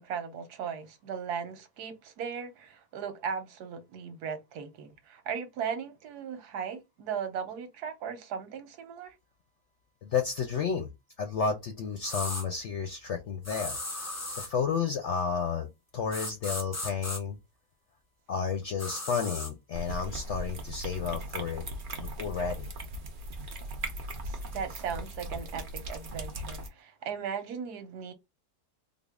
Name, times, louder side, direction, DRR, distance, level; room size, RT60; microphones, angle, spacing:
voice 1, 0.0-9.1 24.2-28.1, right 7 dB, 85° right, 1.4 m, -37 dB
voice 2, 10.0-10.9 11.2-14.1 14.4-17.4 18.3-21.6 22.0-22.7, left 6 dB, 65° left, 0.8 m, -32 dB
sound 1, 12.0-12.4 13.4-14.5 16.1-17.2 18.8-19.5, left 2 dB, 25° left, 0.3 m, -36 dB
sound 2, 19.7-26.7, right 1 dB, 45° right, 0.7 m, -38 dB
3.6 x 2.0 x 3.5 m
omnidirectional pair, 1.6 m